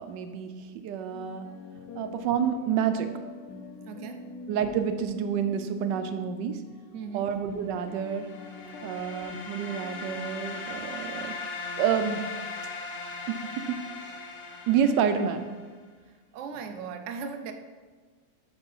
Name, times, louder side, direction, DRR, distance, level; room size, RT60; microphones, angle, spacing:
voice 1, 0.0-1.5 2.0-3.1 4.5-6.6 7.1-8.3 8.8-11.4 11.8-12.2 13.3-13.8 14.7-15.5, right 8 dB, 85° right, 8 dB, 1.2 m, -28 dB
sound 1, 1.1-10.6, left 3 dB, 75° left, 1.3 m, -44 dB
voice 2, 3.9-4.3 6.9-7.3 16.3-17.5, right 6 dB, 70° right, 6 dB, 0.7 m, -38 dB
sound 2, 7.9-15.6, left 4 dB, 55° left, 0.5 m, -39 dB
7.1 x 3.8 x 5.4 m, 1.4 s
omnidirectional pair, 1.9 m